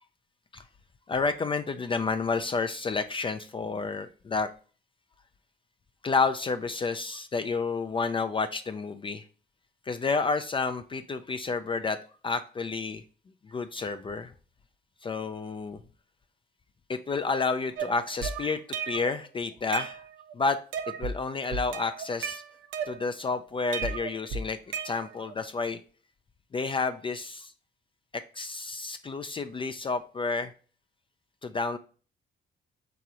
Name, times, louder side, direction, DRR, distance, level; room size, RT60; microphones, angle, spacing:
voice 1, 1.1-4.5 6.0-9.2 9.9-12.0 12.2-13.0 13.4-14.3 15.0-15.8 16.9-18.6 18.9-20.0 20.3-20.6 20.9-22.4 22.9-25.8 26.5-27.5 28.1-30.5 31.4-31.8, left 4 dB, 25° left, 9 dB, 0.3 m, -30 dB
sound 1, 17.8-19.2 19.5-20.3 20.7-21.2 21.5-23.3 23.7-25.3, right 6 dB, 80° right, 0.6 m, -35 dB
3.8 x 2.9 x 4.7 m, 0.39 s
cardioid pair, 90°, 20 cm